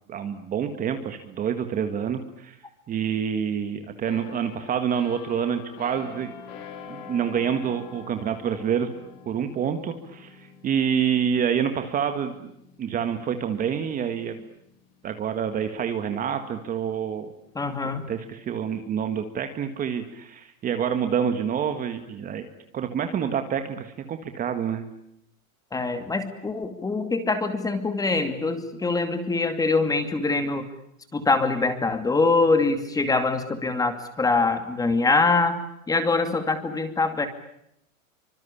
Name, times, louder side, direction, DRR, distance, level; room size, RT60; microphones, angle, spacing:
voice 1, 0.1-2.6 2.9-6.3 6.9-8.9 9.3-12.5 12.8-14.4 15.0-17.3 17.8-22.5 22.7-24.9, right 8 dB, 20° right, 8 dB, 1.8 m, -27 dB
sound 1, 4.0-15.6 16.0-16.3, left 7 dB, 45° left, 5.9 m, -46 dB
voice 2, 17.5-18.0 25.7-30.7 31.1-35.6 35.9-37.3, left 3 dB, 10° left, 9 dB, 2.5 m, -24 dB
26.5 x 25.5 x 8.6 m, 0.76 s
supercardioid pair, 160°, 41 cm